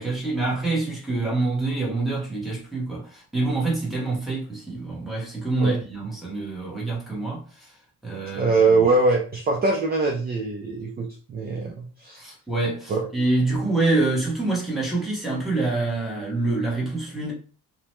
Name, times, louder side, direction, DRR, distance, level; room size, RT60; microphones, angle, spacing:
voice 1, 0.0-7.7 8.0-8.5 11.6-11.7 12.2-17.3, right 2 dB, ahead, 0.9 m, -26 dB
voice 2, 8.3-12.2 12.9-13.0, right 3 dB, 30° right, 0.4 m, -22 dB
2.7 x 2.1 x 3.0 m
cardioid pair, 170°, 36 cm